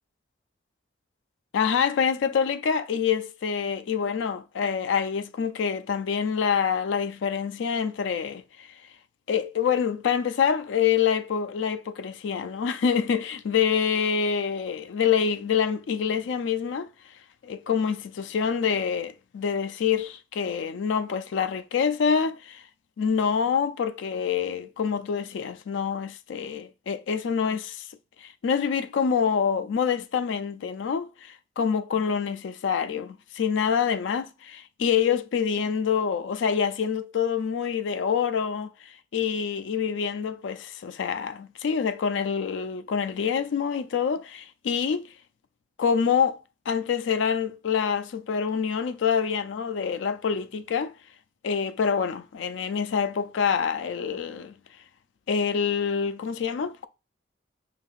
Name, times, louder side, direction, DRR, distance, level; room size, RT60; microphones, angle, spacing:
voice 1, 1.5-8.7 9.3-16.9 17.4-22.6 23.0-27.9 28.2-38.7 39.1-45.1 45.8-46.4 46.7-50.9 51.4-54.5 55.3-56.9, left 7 dB, 85° left, 0.4 m, -26 dB
5.2 x 2.7 x 2.4 m
head